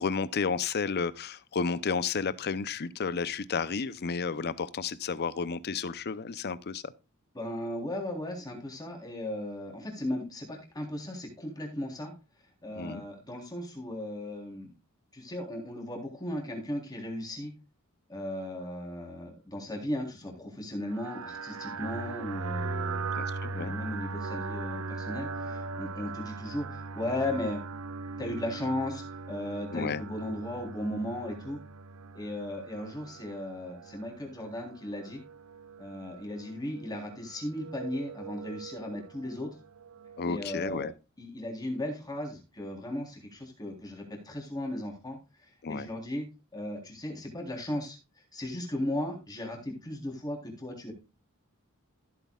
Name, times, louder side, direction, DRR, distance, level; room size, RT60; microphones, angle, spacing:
voice 1, 0.0-6.9 12.8-13.0 23.1-23.7 29.7-30.0 40.2-40.9 45.6-45.9, left 5 dB, 50° left, 0.6 m, -32 dB
voice 2, 7.3-12.1 12.6-14.7 15.1-17.5 18.1-23.1 23.5-27.6 28.2-31.6 32.1-35.2 35.8-39.5 40.2-40.9 41.2-45.2 45.7-46.3 46.5-48.0 48.3-50.9, left 1 dB, 20° left, 3.5 m, -36 dB
sound 1, 20.9-40.6, right 4 dB, 70° right, 0.6 m, -40 dB
14.5 x 8.3 x 2.3 m
head